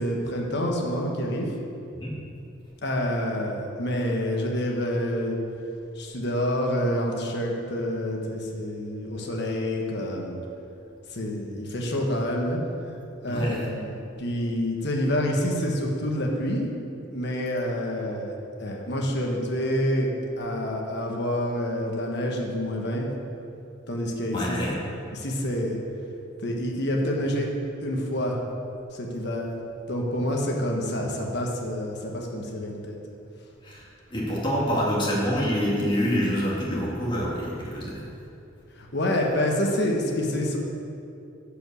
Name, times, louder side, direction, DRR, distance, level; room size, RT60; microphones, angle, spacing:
voice 1, 0.0-1.5 2.8-5.4 6.0-10.4 11.1-12.6 13.2-13.9 14.2-16.7 17.1-18.3 18.6-20.1 20.4-23.1 23.9-24.6 25.1-25.8 26.4-27.5 27.8-28.4 28.9-29.4 29.9-33.0 38.8-40.6, equal, 55° left, 0 dB, 1.4 m, -27 dB
voice 2, 13.3-13.7 24.3-24.7 33.6-33.8 34.1-38.0, equal, 25° left, -5 dB, 2.0 m, -26 dB
10.5 x 5.3 x 6.5 m, 2.7 s
head